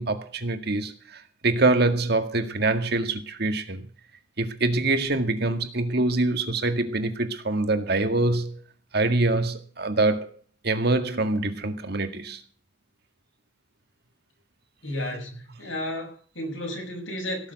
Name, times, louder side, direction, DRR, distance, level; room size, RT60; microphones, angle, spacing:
voice 1, 0.0-3.9 4.4-8.6 8.9-12.4, right 2 dB, 55° right, 1.9 m, -25 dB
voice 2, 14.8-17.5, left 1 dB, 90° left, 7.0 m, -33 dB
17.5 x 7.3 x 8.2 m
head